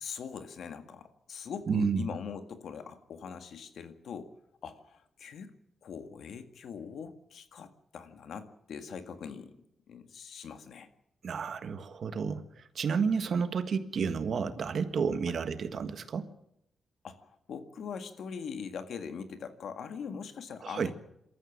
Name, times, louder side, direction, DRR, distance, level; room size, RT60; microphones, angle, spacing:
voice 1, 0.0-4.3 4.6-5.5 5.8-9.6 9.9-10.9 13.4-13.5 15.3-15.4 17.0-20.9, left 6 dB, 70° left, 8 dB, 2.0 m, -42 dB
voice 2, 1.7-2.1 11.2-12.4 12.7-16.3 20.6-20.9, right 5 dB, 60° right, 10 dB, 1.6 m, -31 dB
27.0 x 13.5 x 7.4 m, 0.79 s
cardioid pair, 110°, 0 cm